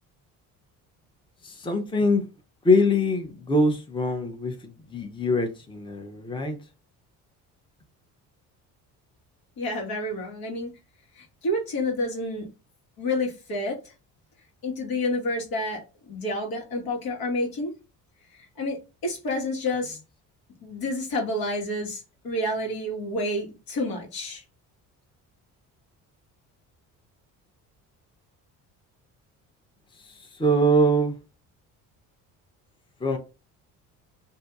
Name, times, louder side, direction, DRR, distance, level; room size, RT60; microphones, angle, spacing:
voice 1, 1.4-2.3 2.6-6.6 30.4-31.2 33.0-33.2, equal, 15° left, 0.7 m, -23 dB
voice 2, 9.6-10.7 11.1-12.5 13.0-13.9 14.6-17.7 18.3-20.0 20.6-24.4, left 1 dB, 65° left, 1.5 m, -29 dB
2.7 x 2.7 x 3.5 m
supercardioid pair, 75°, 38 cm